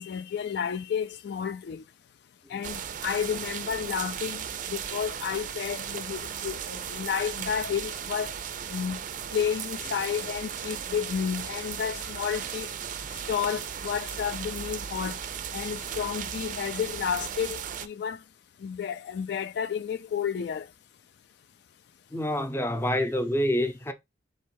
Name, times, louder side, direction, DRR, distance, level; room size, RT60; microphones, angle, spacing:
voice 1, 0.0-1.8 2.5-8.3 8.7-9.0 9.3-12.7 13.3-15.2 15.5-18.2 18.6-20.7, left 7 dB, 60° left, 0.3 m, -31 dB
sound 1, 2.6-17.9, right 8 dB, 45° right, 0.4 m, -36 dB
voice 2, 22.1-23.9, left 1 dB, 15° left, 0.6 m, -27 dB
3.7 x 3.1 x 4.6 m
head